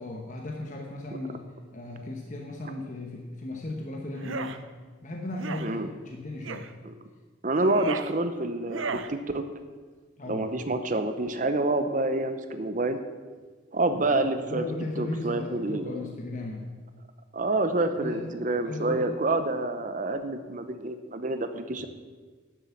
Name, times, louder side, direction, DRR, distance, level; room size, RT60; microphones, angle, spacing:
voice 1, 0.0-1.5 1.7-4.6 5.0-6.7 10.2-10.6 13.9-14.2 14.5-16.7 18.0-18.4 18.6-19.1, left 2 dB, 40° left, 1 dB, 1.1 m, -36 dB
sound 1, 4.1-4.6 5.3-5.7 6.4-6.7 7.5-8.1 8.7-9.1, right 4 dB, 80° right, 0.7 m, -34 dB
voice 2, 7.4-9.4 10.3-13.0 13.7-14.6 15.0-16.0 17.3-21.9, right 2 dB, 40° right, 9 dB, 0.7 m, -28 dB
11.0 x 7.5 x 7.2 m, 1.4 s
head